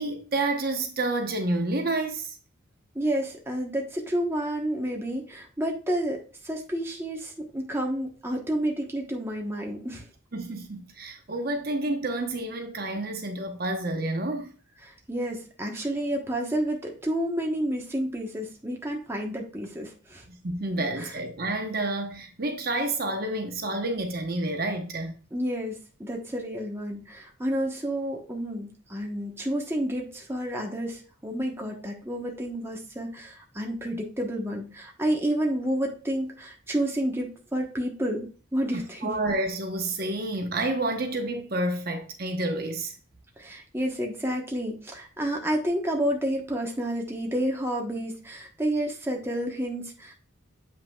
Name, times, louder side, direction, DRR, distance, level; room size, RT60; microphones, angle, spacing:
voice 1, 0.0-2.3 10.3-14.5 20.3-25.1 39.0-42.9, right 2 dB, 45° right, 0.9 m, -29 dB
voice 2, 2.9-10.1 14.8-20.2 20.8-21.2 25.3-39.2 43.4-50.1, right 1 dB, 10° right, 1.0 m, -30 dB
7.4 x 5.7 x 2.3 m
head